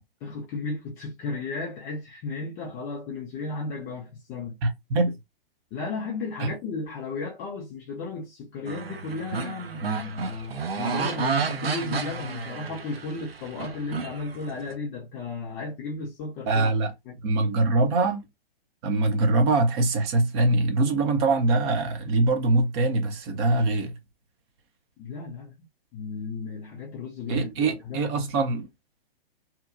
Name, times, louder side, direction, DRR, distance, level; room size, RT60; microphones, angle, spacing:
voice 1, 0.2-4.6 5.7-17.1 25.0-25.6 25.9-28.1, left 3 dB, 15° left, 0.3 m, -34 dB
voice 2, 4.6-5.2 6.4-6.6 16.5-16.9 17.2-18.2 18.8-24.0 27.3-28.7, right 2 dB, 30° right, 0.6 m, -23 dB
sound 1, 8.7-14.7, right 5 dB, 85° right, 0.6 m, -31 dB
2.8 x 2.2 x 2.4 m
figure-of-eight pair, 120°, 29 cm